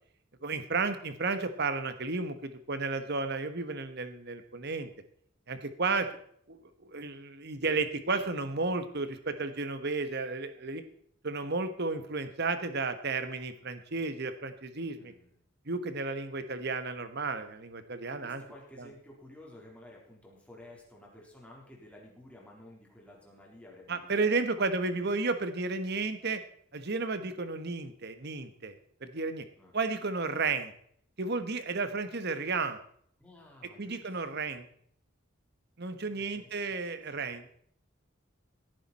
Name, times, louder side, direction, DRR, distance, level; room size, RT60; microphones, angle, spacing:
voice 1, 0.4-4.9 5.5-6.1 6.5-10.8 11.2-15.1 15.7-18.4 18.8-18.9 23.9-26.4 26.7-28.7 29.0-29.4 29.7-30.7 31.2-32.8 33.8-34.7 35.8-37.5, right 3 dB, 55° right, 10 dB, 1.3 m, -33 dB
voice 2, 14.8-15.4 18.1-25.1 29.6-29.8 33.2-34.5 36.1-36.8 37.3-37.5, left 1 dB, 5° left, -3 dB, 4.0 m, -53 dB
17.0 x 10.0 x 4.3 m, 0.63 s
head